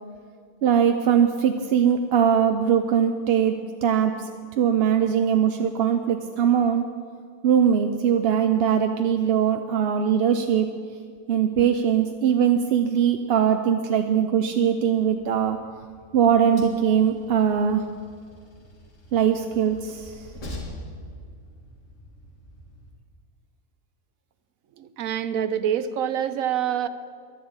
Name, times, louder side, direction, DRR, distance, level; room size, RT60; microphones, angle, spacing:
voice 1, 0.6-4.3 4.6-6.8 7.4-10.7 11.3-15.6 16.1-17.8 19.1-20.3, right 8 dB, 55° right, 6 dB, 0.7 m, -21 dB
Train, 15.2-22.9, left 1 dB, 60° left, 2.4 m, -44 dB
voice 2, 24.8-26.9, right 9 dB, 75° right, 13 dB, 1.1 m, -26 dB
11.0 x 10.5 x 8.7 m, 2.1 s
omnidirectional pair, 1.5 m